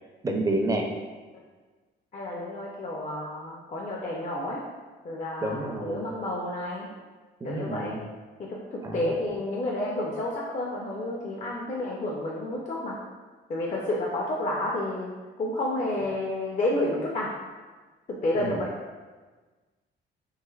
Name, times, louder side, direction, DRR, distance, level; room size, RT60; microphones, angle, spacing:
voice 1, 0.2-0.9 5.4-6.0 7.4-8.0 8.8-9.1 18.3-18.6, right 2 dB, 15° right, 1 dB, 0.4 m, -29 dB
voice 2, 2.1-4.6 5.0-6.9 7.4-8.0 8.5-13.0 13.5-15.1 15.4-17.3 18.2-18.7, left 1 dB, 40° left, -3 dB, 0.5 m, -30 dB
3.1 x 3.0 x 2.3 m, 1.3 s
cardioid pair, 90°, 20 cm